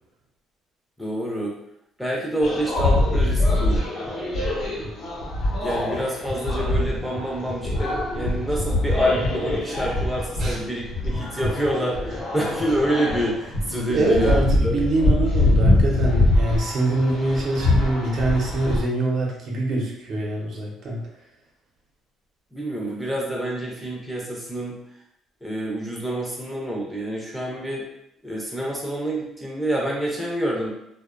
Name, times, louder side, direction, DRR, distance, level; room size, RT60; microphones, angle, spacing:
voice 1, 1.0-1.5 2.0-3.8 5.6-14.8 22.5-24.8 25.4-27.8 28.2-30.7, right 1 dB, ahead, -3 dB, 0.6 m, -27 dB
sound 1, 2.4-18.8, left 2 dB, 65° left, 0.9 m, -23 dB
voice 2, 13.7-21.1, right 2 dB, 60° right, -2 dB, 0.7 m, -24 dB
2.5 x 2.1 x 2.4 m, 0.80 s
cardioid pair, 110°, 0 cm